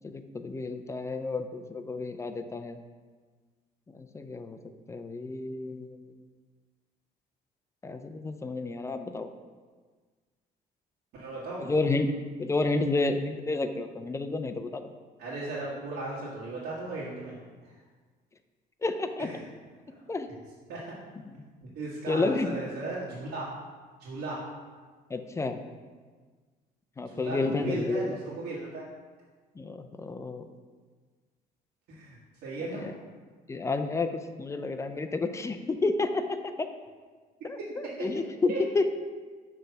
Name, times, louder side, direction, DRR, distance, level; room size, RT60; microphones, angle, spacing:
voice 1, 0.0-2.8 4.0-4.6 4.9-6.1 7.8-9.3 11.6-14.8 18.8-19.3 20.1-20.3 22.1-22.5 25.1-25.6 27.0-28.2 29.6-30.5 32.6-32.9 33.5-36.7 37.4-38.9, left 3 dB, 15° left, 8 dB, 0.4 m, -30 dB
voice 2, 11.1-11.7 15.2-17.4 17.6-17.7 19.2-19.4 20.7-20.8 21.7-23.5 24.0-24.4 27.0-28.9 31.9-32.9 37.6-37.7 38.5-38.6, right 2 dB, 80° right, -9 dB, 1.6 m, -36 dB
6.2 x 3.3 x 5.6 m, 1.5 s
cardioid pair, 110°, 17 cm